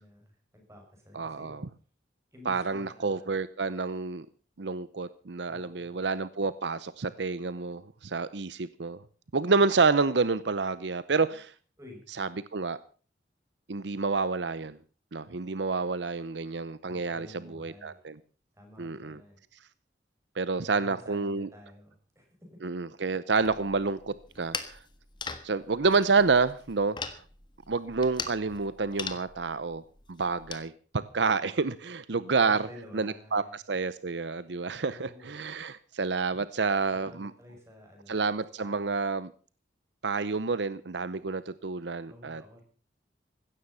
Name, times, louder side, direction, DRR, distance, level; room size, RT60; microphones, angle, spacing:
voice 1, 0.0-1.6 2.3-3.3 5.5-6.1 11.8-12.1 16.9-18.0 18.5-19.4 20.6-22.6 32.4-33.6 34.8-35.3 36.9-38.2 38.6-38.9 42.1-42.6, left 1 dB, 15° right, 2 dB, 6.6 m, -51 dB
voice 2, 1.1-1.6 2.4-4.3 4.6-9.0 9.3-11.5 12.2-12.8 13.7-14.8 15.1-18.2 18.8-19.2 20.4-21.5 22.6-24.8 25.4-27.2 27.7-29.8 30.1-32.6 32.9-37.3 38.1-39.3 40.0-42.4, right 4 dB, 75° right, 16 dB, 0.8 m, -29 dB
sound 1, 23.4-30.7, left 5 dB, 25° left, 1.5 m, -41 dB
16.5 x 13.0 x 5.6 m, 0.38 s
head